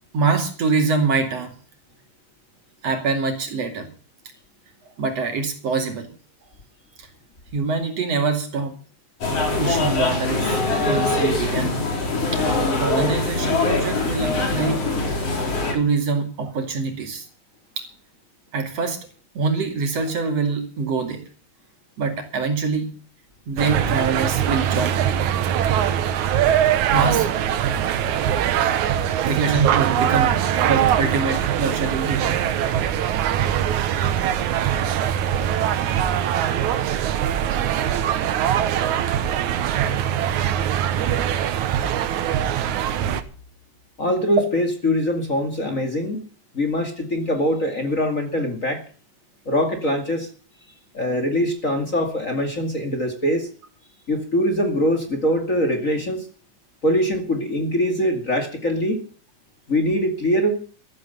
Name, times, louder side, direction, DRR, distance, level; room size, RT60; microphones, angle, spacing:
voice 1, 0.1-1.5 2.8-3.9 5.0-6.1 7.0-7.1 7.5-8.8 9.6-11.8 12.3-12.4 12.8-14.9 15.7-17.3 17.8-17.9 18.5-19.1 19.4-21.2 22.0-23.0 23.5-25.3 26.9-27.3 29.3-30.4 30.7-32.4, right 4 dB, 60° right, 5 dB, 3.6 m, -24 dB
sound 1, 9.2-15.7, left 2 dB, 55° left, 5.0 m, -23 dB
sound 2, 23.6-43.2, right 10 dB, 90° right, 2.6 m, -22 dB
voice 2, 44.0-46.2 46.5-48.8 49.5-50.3 50.9-53.5 54.1-56.3 56.8-59.0 59.7-60.6, equal, 30° left, 6 dB, 2.5 m, -23 dB
14.5 x 13.5 x 5.6 m, 0.40 s
omnidirectional pair, 3.3 m